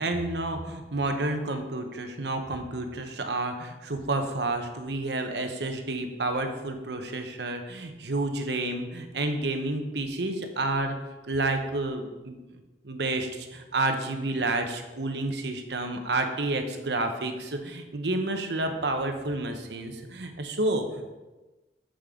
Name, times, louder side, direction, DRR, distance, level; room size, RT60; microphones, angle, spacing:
voice 1, 0.0-11.0 11.3-12.6 12.8-21.1, right 2 dB, 75° right, 6 dB, 1.0 m, -30 dB
8.7 x 7.5 x 3.7 m, 1.1 s
head